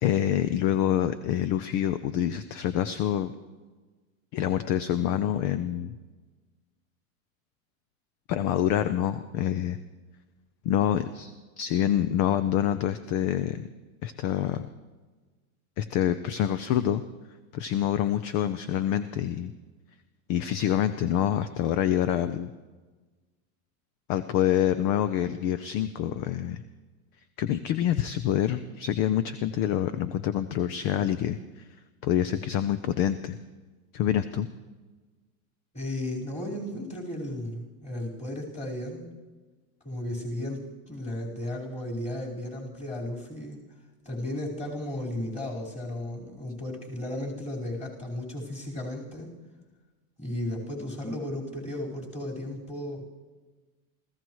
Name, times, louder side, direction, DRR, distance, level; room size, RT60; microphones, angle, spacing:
voice 1, 0.0-3.3 4.3-6.0 8.3-9.8 10.6-11.3 11.6-13.7 14.0-14.7 15.8-17.0 17.5-19.5 20.3-22.5 24.1-26.6 27.4-31.6 32.0-33.4 33.9-34.5, left 11 dB, 45° left, 13 dB, 0.6 m, -26 dB
voice 2, 35.7-39.1 39.8-43.6 44.0-49.3 50.2-53.1, left 1 dB, 15° left, -3 dB, 4.6 m, -34 dB
27.0 x 15.5 x 3.1 m, 1.3 s
supercardioid pair, 125°, 42 cm